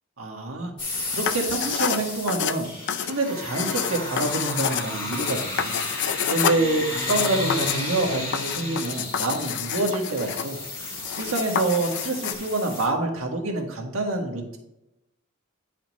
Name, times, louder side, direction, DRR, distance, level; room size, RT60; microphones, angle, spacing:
voice 1, 0.2-0.7 1.1-2.7 3.1-5.8 6.2-10.6 11.2-14.6, right 2 dB, 70° right, 1 dB, 1.7 m, -27 dB
sound 1, 0.8-12.9, left 2 dB, 25° left, 2.2 m, -33 dB
sound 2, 1.1-12.3, left 8 dB, 55° left, 0.5 m, -29 dB
10.5 x 5.0 x 3.1 m, 0.90 s
head